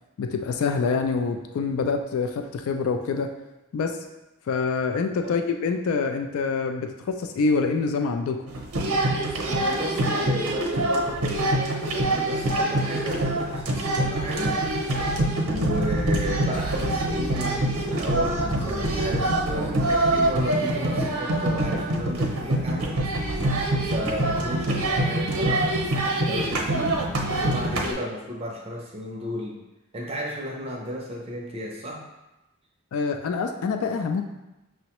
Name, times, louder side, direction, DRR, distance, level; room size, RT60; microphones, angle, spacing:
voice 1, 0.2-3.3 3.7-4.0 4.5-8.4 32.9-34.2, left 4 dB, 70° left, 5 dB, 0.3 m, -26 dB
sound 1, 8.5-27.9, right 1 dB, 85° right, 0.7 m, -25 dB
voice 2, 9.4-14.6 15.4-23.2 23.8-25.8 26.2-27.0 27.4-29.6 29.9-32.0, equal, 25° right, -1 dB, 0.4 m, -33 dB
6.1 x 2.1 x 2.9 m, 1.0 s
head